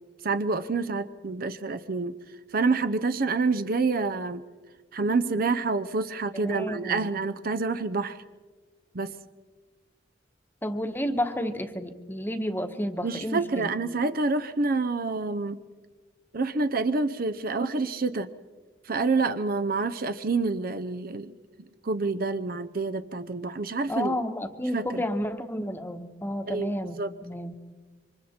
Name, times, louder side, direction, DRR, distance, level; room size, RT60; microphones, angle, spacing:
voice 1, 0.2-2.2 2.5-4.4 4.9-8.2 8.9-9.1 13.0-15.6 16.3-18.3 18.8-21.3 21.8-24.2 24.7-25.0 26.5-27.1, right 3 dB, 50° right, 12 dB, 0.7 m, -27 dB
voice 2, 6.3-7.1 10.6-13.7 23.9-27.5, equal, 10° left, 7 dB, 1.2 m, -31 dB
27.0 x 25.0 x 4.4 m, 1.4 s
head